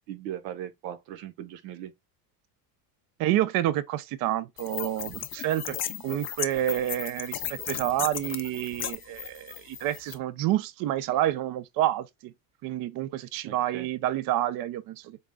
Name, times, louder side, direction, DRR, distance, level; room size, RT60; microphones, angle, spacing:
voice 1, 0.1-1.9 13.4-13.9, right 11 dB, 80° right, 0.8 m, -38 dB
voice 2, 3.2-12.3 12.6-15.2, right 13 dB, 45° right, 0.4 m, -29 dB
sound 1, 4.6-10.1, left 10 dB, 30° left, 0.4 m, -36 dB
4.0 x 2.3 x 3.2 m
supercardioid pair, 105°, 49 cm